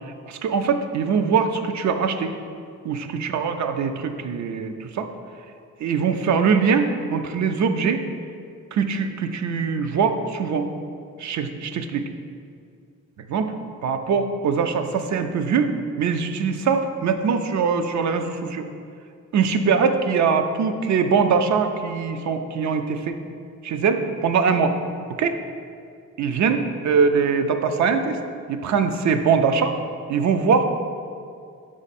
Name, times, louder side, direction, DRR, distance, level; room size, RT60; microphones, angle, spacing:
voice 1, 0.3-2.3 2.8-5.1 5.8-8.0 8.7-10.7 11.2-12.0 13.3-13.5 13.8-18.7 19.3-23.2 23.6-24.8 25.2-25.4 26.2-28.2 28.5-29.7 30.1-30.6, right 5 dB, 65° right, 8 dB, 0.5 m, -22 dB
5.3 x 4.9 x 4.1 m, 2.3 s
cardioid pair, 120°, 30 cm